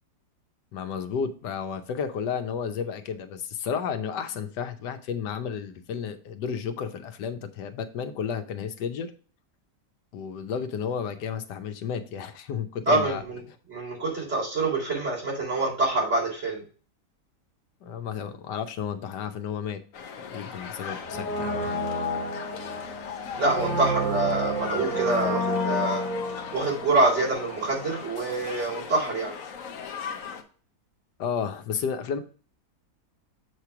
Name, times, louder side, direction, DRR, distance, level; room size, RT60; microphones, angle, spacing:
voice 1, 0.7-9.1 10.1-13.2 17.8-19.8 20.3-21.8 31.2-32.2, left 7 dB, 85° left, 9 dB, 1.4 m, -32 dB
voice 2, 12.9-13.4 13.7-16.6 23.4-26.0 26.5-29.4, right 2 dB, 45° right, -5 dB, 3.8 m, -26 dB
sound 1, 19.9-30.4, left 6 dB, 60° left, 1.1 m, -39 dB
Brass instrument, 21.0-27.9 28.2-28.3, equal, 25° right, 2.7 m, -30 dB
7.5 x 3.2 x 5.7 m, 0.39 s
omnidirectional pair, 1.8 m